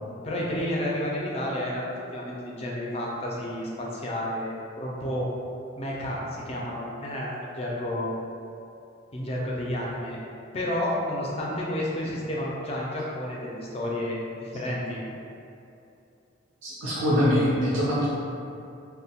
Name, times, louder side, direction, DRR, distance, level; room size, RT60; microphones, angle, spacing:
voice 1, 0.2-5.3 5.8-8.1 9.1-10.2 10.5-15.0, left 1 dB, 30° left, -4 dB, 0.4 m, -31 dB
voice 2, 16.6-18.1, equal, 80° right, -9 dB, 0.6 m, -23 dB
2.8 x 2.1 x 2.7 m, 2.6 s
head